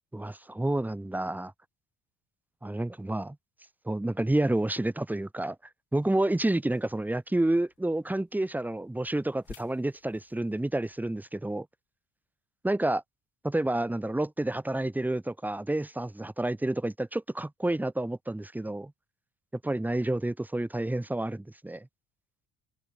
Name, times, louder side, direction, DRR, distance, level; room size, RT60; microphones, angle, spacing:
voice 1, 0.1-1.5 2.6-3.4 3.9-5.6 5.9-11.7 12.6-13.0 13.4-18.9 19.6-21.9, right 1 dB, 5° right, 0.5 m, -29 dB
sound 1, 5.9-11.3, left 8 dB, 50° left, 6.3 m, -57 dB
supercardioid pair, 65°, 40 cm